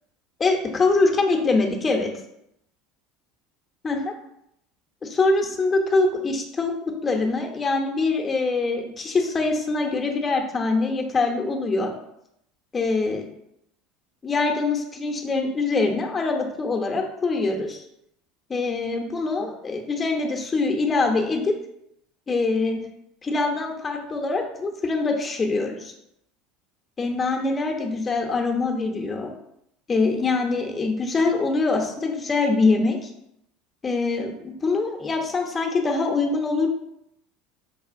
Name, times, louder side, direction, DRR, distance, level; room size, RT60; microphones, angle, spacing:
voice 1, 0.4-2.1 3.8-4.1 5.0-6.7 7.0-11.9 12.7-13.3 14.2-17.8 18.5-21.6 22.3-22.8 23.2-25.9 27.0-29.3 29.9-33.1 33.8-36.7, left 3 dB, 25° left, 2 dB, 0.8 m, -24 dB
5.4 x 2.4 x 2.5 m, 0.77 s
hypercardioid pair, 80°, 0 cm